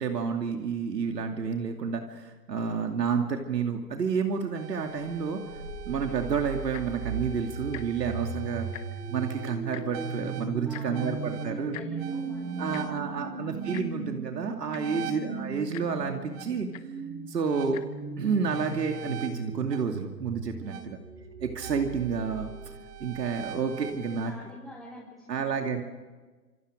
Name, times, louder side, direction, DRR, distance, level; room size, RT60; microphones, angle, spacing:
voice 1, 0.0-5.4 5.9-8.7 9.1-11.8 12.6-16.7 17.3-17.8 18.2-21.0 21.4-22.5 23.0-24.3 25.3-25.8, right 5 dB, 75° right, 3 dB, 2.7 m, -30 dB
sound 1, 4.5-24.3, right 6 dB, 35° right, 3.6 m, -37 dB
Tick-tock, 6.6-7.0 7.7-7.8 8.2-8.3 8.6-9.1 9.7-9.8 10.7-10.9 11.7-11.9 12.7-12.8 13.7-13.9 14.4-14.5 14.7-15.0 15.7-15.9 16.7-16.8 17.6-17.8 18.5-18.6, left 17 dB, 25° left, 0.8 m, -43 dB
voice 2, 10.6-13.5 14.9-15.2 20.7-21.0 24.2-25.8, left 1 dB, ahead, -6 dB, 3.9 m, -48 dB
27.0 x 26.5 x 5.1 m, 1.3 s
hypercardioid pair, 140°, 48 cm